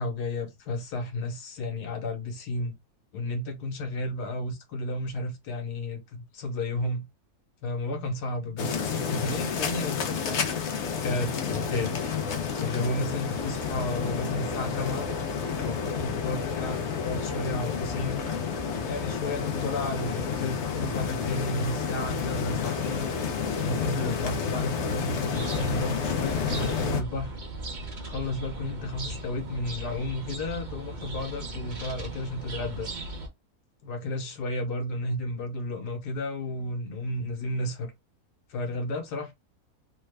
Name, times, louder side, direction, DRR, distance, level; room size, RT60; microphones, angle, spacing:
voice 1, 0.0-2.7 3.1-7.0 7.6-10.4 11.0-12.0 12.6-15.1 15.6-18.2 18.8-23.1 23.5-27.4 28.0-32.9 33.8-37.9 38.5-39.3, left 1 dB, 90° left, 1.5 m, -32 dB
sound 1, 8.6-27.0, left 6 dB, 60° left, 0.8 m, -30 dB
sound 2, 25.3-33.3, right 2 dB, 40° right, 0.7 m, -38 dB
3.4 x 2.1 x 3.3 m
omnidirectional pair, 1.7 m